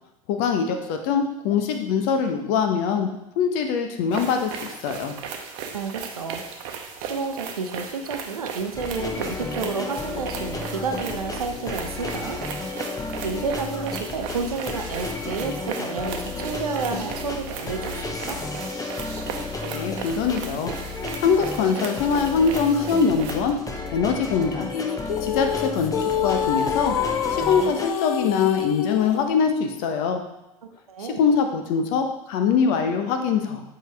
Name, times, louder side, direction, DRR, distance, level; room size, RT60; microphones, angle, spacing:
voice 1, 0.3-3.1 3.4-5.1 19.6-20.7 21.2-23.5 23.9-24.7 25.2-25.9 26.2-27.0 27.3-30.2 31.0-33.6, left 6 dB, 55° left, 5 dB, 1.0 m, -23 dB
sound 1, 4.1-23.4, right 6 dB, 60° right, 0.9 m, -37 dB
voice 2, 5.7-6.4 7.0-12.4 13.2-18.4 30.9-31.2, right 4 dB, 85° right, 6 dB, 0.8 m, -30 dB
sound 2, 8.7-27.9, left 3 dB, 20° left, 1.0 m, -33 dB
sound 3, 24.7-29.3, left 8 dB, 80° left, 0.4 m, -26 dB
7.6 x 5.0 x 3.4 m, 0.90 s
figure-of-eight pair, 75°, 18 cm